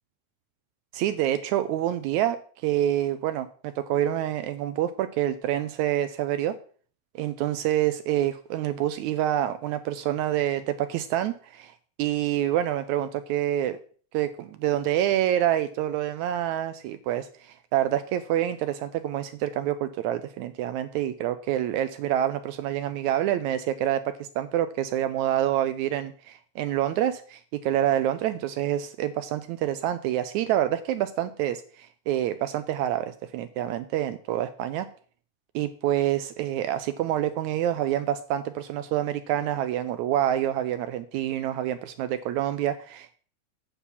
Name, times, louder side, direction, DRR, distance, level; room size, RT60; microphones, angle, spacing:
voice 1, 0.9-6.6 7.2-11.7 12.0-13.8 14.1-34.9 35.6-43.2, right 12 dB, 80° right, 11 dB, 1.7 m, -27 dB
9.3 x 7.1 x 4.2 m, 0.44 s
omnidirectional pair, 3.7 m